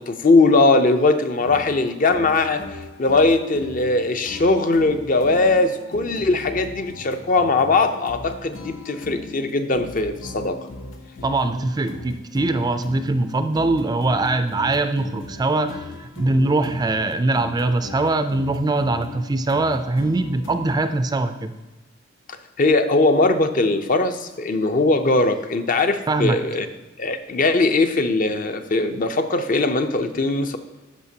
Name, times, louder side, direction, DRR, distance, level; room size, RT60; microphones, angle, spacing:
voice 1, 0.0-10.6 22.6-26.7 27.0-30.6, left 3 dB, 45° left, 8 dB, 0.5 m, -20 dB
sound 1, 1.4-20.9, left 2 dB, 90° left, 0.8 m, -39 dB
voice 2, 11.2-21.6 26.1-26.4, right 2 dB, 20° right, 9 dB, 0.3 m, -22 dB
12.5 x 5.1 x 2.8 m, 1.1 s
head